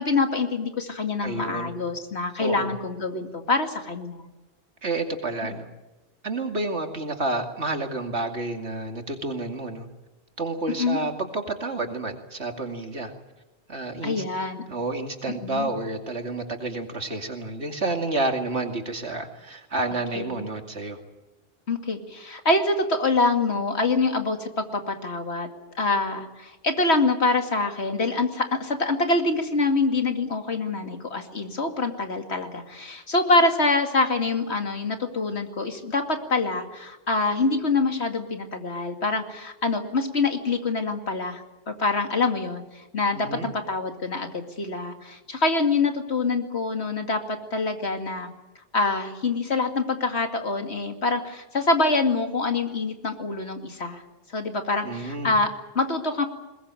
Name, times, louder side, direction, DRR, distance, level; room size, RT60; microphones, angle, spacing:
voice 1, 0.0-4.2 10.7-11.0 14.0-14.6 15.3-15.7 20.2-20.4 21.7-25.5 25.8-48.3 48.7-54.0 54.3-56.2, left 3 dB, 75° left, 5 dB, 2.6 m, -25 dB
voice 2, 1.2-1.8 2.4-2.7 4.8-5.7 6.2-9.9 10.4-13.1 13.7-14.2 14.7-21.0 43.1-43.5 54.8-55.4, right 2 dB, 80° right, 4 dB, 2.8 m, -30 dB
21.0 x 21.0 x 9.1 m, 1.1 s
omnidirectional pair, 1.1 m